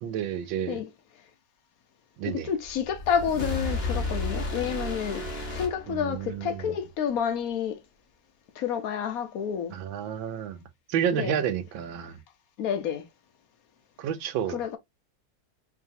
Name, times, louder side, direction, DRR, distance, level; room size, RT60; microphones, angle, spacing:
voice 1, 0.0-0.8 2.2-2.5 5.9-6.7 9.7-10.6 10.9-12.2 14.0-14.6, right 9 dB, 85° right, 1.4 m, -30 dB
voice 2, 2.3-7.8 8.6-9.7 11.1-11.4 12.6-13.1 14.5-14.8, left 8 dB, 60° left, 1.0 m, -29 dB
sound 1, 2.7-6.5, left 2 dB, 40° left, 1.2 m, -32 dB
4.7 x 2.8 x 2.6 m
omnidirectional pair, 2.1 m